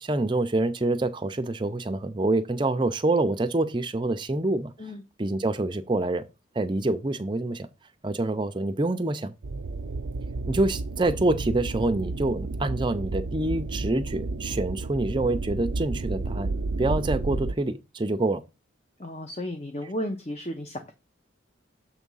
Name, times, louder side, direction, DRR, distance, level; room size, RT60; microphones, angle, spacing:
voice 1, 0.0-4.7 5.2-6.2 6.6-7.7 8.0-9.3 10.5-16.5 16.8-18.4, right 2 dB, 25° right, 0.5 m, -26 dB
sound 1, 9.4-17.5, right 3 dB, 85° right, 0.5 m, -31 dB
voice 2, 19.0-20.9, left 1 dB, 35° left, 0.8 m, -34 dB
7.2 x 3.6 x 5.5 m
head